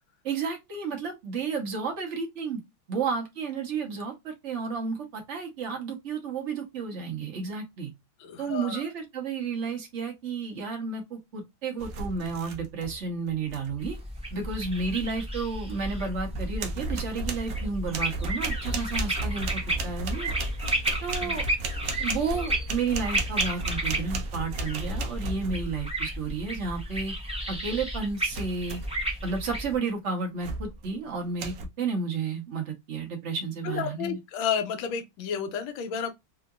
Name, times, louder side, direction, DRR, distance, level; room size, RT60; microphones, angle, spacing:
voice 1, 0.2-2.6 2.9-7.9 8.4-14.0 14.3-20.3 21.0-21.4 22.0-27.1 27.5-28.8 29.2-34.2, right 5 dB, 45° right, 1.2 m, -32 dB
voice 2, 8.2-8.8 21.2-21.3 33.6-36.1, left 7 dB, 80° left, 1.5 m, -31 dB
sound 1, 11.8-13.0 13.3-13.8 15.7-15.8 16.3-25.9 28.3-29.0 29.5-29.8 30.4-30.9 31.4-31.7, right 2 dB, 65° right, 0.8 m, -34 dB
sound 2, 13.8-29.8, right 1 dB, 10° right, 0.3 m, -33 dB
3.7 x 2.6 x 2.3 m
omnidirectional pair, 2.2 m